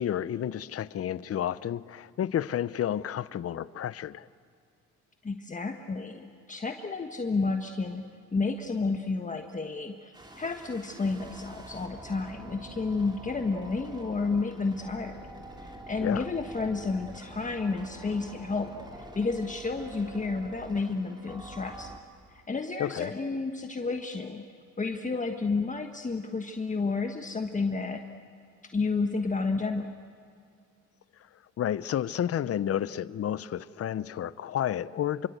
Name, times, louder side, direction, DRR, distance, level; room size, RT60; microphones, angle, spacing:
voice 1, 0.0-4.3 16.0-16.2 22.8-23.1 31.6-35.3, left 10 dB, 50° left, 0.7 m, -31 dB
voice 2, 5.2-8.0 8.3-15.2 15.6-21.9 22.3-24.4 24.8-28.0 28.7-29.9, left 4 dB, 25° left, 1.4 m, -31 dB
sound 1, 10.1-22.0, right 1 dB, 15° right, 3.2 m, -46 dB
27.5 x 24.5 x 8.0 m
cardioid pair, 90°, 30 cm